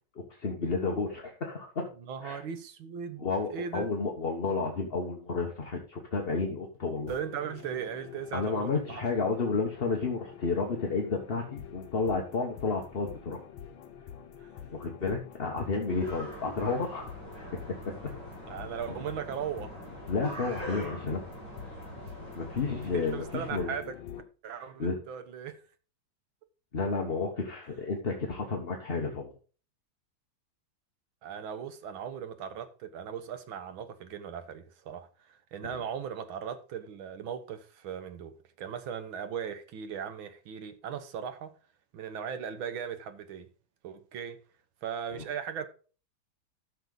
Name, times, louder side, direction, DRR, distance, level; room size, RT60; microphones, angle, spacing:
voice 1, 0.3-1.9 2.2-2.4 3.2-7.1 8.3-13.4 14.7-17.1 20.1-21.2 22.3-23.7 24.8-25.0 26.7-29.3, left 4 dB, 35° left, 1.2 m, -31 dB
voice 2, 2.1-3.9 7.1-9.0 14.4-14.5 18.5-19.8 22.9-24.0 24.4-25.6 31.2-41.6 41.9-43.5 43.8-44.4 44.8-45.7, right 7 dB, 80° right, 1.9 m, -38 dB
sound 1, 7.1-24.2, left 9 dB, 80° left, 1.9 m, -47 dB
sound 2, 15.9-23.6, equal, 60° right, 3.9 m, -43 dB
12.0 x 6.6 x 3.9 m
omnidirectional pair, 2.2 m